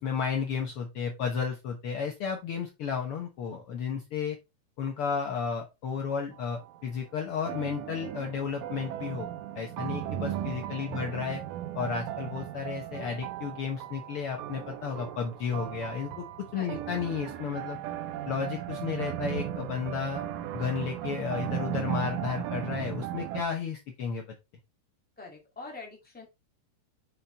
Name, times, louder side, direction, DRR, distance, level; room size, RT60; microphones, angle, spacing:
voice 1, 0.0-4.4 4.8-9.3 9.5-11.4 11.7-16.3 16.5-17.8 18.3-20.2 20.5-24.2, left 6 dB, 80° left, 3 dB, 1.2 m, -33 dB
sound 1, 6.3-6.8 7.5-23.4, right 11 dB, 80° right, 2.4 m, -36 dB
voice 2, 25.2-26.2, left 3 dB, 5° left, -1 dB, 1.6 m, -45 dB
6.9 x 5.7 x 3.4 m, 0.24 s
omnidirectional pair, 3.9 m